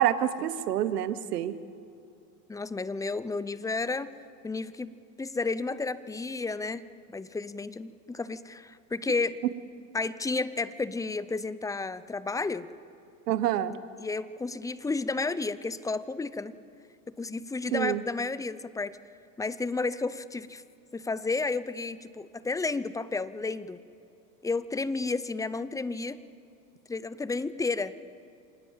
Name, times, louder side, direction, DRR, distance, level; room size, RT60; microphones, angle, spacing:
voice 1, 0.0-1.6 13.3-13.8 17.7-18.0, right 11 dB, 85° right, 14 dB, 1.1 m, -27 dB
voice 2, 2.5-4.1 4.4-4.9 5.2-9.4 9.9-12.7 14.0-16.5 17.2-19.0 19.4-20.6 20.9-23.8 24.4-26.2 26.9-28.0, left 3 dB, 5° left, 16 dB, 0.6 m, -32 dB
26.0 x 19.5 x 7.4 m, 2.6 s
supercardioid pair, 110°, 46 cm